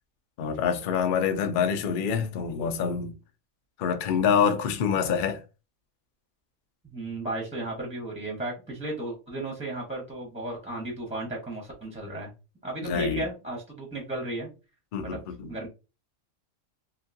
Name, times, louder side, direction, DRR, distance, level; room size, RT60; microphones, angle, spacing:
voice 1, 0.4-3.1 3.8-5.4 12.8-13.2 14.9-15.5, left 7 dB, 80° left, 0.4 m, -26 dB
voice 2, 6.8-12.3 12.6-14.5 15.0-15.2 15.5-15.7, right 2 dB, 5° right, 0.6 m, -34 dB
2.9 x 2.6 x 2.5 m
omnidirectional pair, 1.5 m